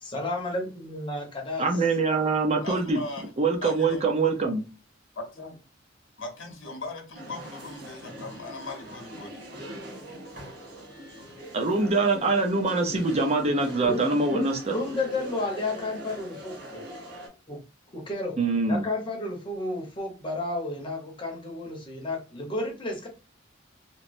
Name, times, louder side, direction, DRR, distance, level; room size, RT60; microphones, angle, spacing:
voice 1, 0.0-1.7 13.8-16.8 17.5-17.6 17.9-18.4 18.7-23.1, left 2 dB, 25° left, 1 dB, 0.8 m, -32 dB
voice 2, 1.6-3.0 3.4-4.6 11.5-14.7 18.4-18.8, right 3 dB, 35° right, 3 dB, 0.6 m, -24 dB
voice 3, 2.6-3.3 3.6-4.0 5.2-5.5 6.2-9.4, left 2 dB, 75° left, 2 dB, 0.8 m, -38 dB
sound 1, 7.1-17.3, equal, 60° right, 1.0 m, -42 dB
3.0 x 2.1 x 2.5 m, 0.32 s
head